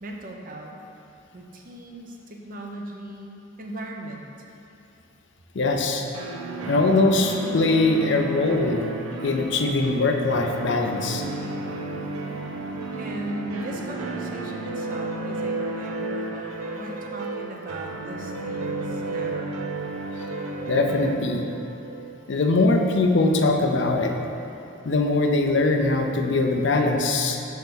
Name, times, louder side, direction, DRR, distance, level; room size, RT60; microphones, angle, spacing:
voice 1, 0.0-0.8 1.3-4.3 13.0-19.6, right 1 dB, 40° right, 0 dB, 0.6 m, -38 dB
voice 2, 5.5-6.1 6.7-8.9 9.2-11.2 20.7-21.4 22.3-24.1 24.8-27.4, left 2 dB, 55° left, 3 dB, 0.5 m, -21 dB
sound 1, 6.1-22.9, right 2 dB, 85° right, 0.6 m, -33 dB
6.5 x 3.5 x 6.0 m, 2.7 s
head